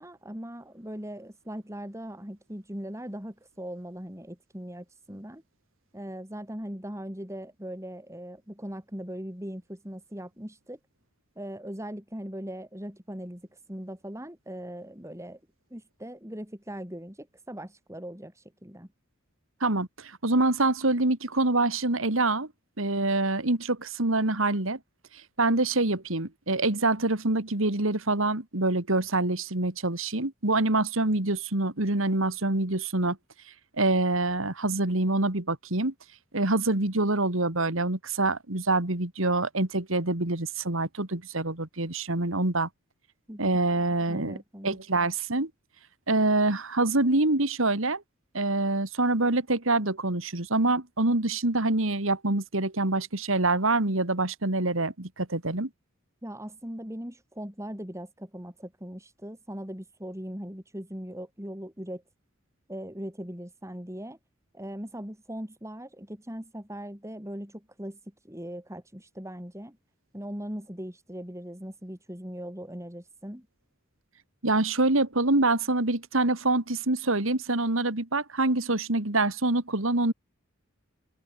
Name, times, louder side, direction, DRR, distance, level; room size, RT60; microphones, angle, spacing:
voice 1, 0.0-5.4 5.9-10.8 11.4-15.4 15.7-18.9 43.3-43.5 44.1-44.8 56.2-62.0 62.7-64.2 64.5-69.8 70.1-73.5, equal, 15° right, 5.2 m, -39 dB
voice 2, 19.6-22.5 22.8-24.8 25.4-33.2 33.8-35.9 36.3-42.7 43.4-44.4 44.6-45.5 46.1-48.0 48.3-55.7 74.4-80.1, right 2 dB, 75° right, 2.7 m, -26 dB
head